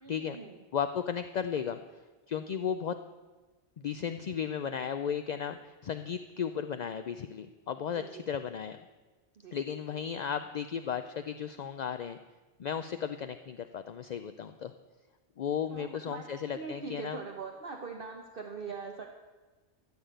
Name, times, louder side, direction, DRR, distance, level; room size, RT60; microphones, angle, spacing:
voice 1, 0.0-0.6 7.9-8.2 9.4-9.6 15.7-19.1, right 4 dB, 55° right, 3 dB, 1.2 m, -42 dB
voice 2, 0.7-1.8 2.3-3.0 3.8-8.8 9.5-12.2 12.6-14.7 15.4-17.2, left 8 dB, 55° left, 9 dB, 0.5 m, -35 dB
14.0 x 7.2 x 9.0 m, 1.3 s
omnidirectional pair, 1.2 m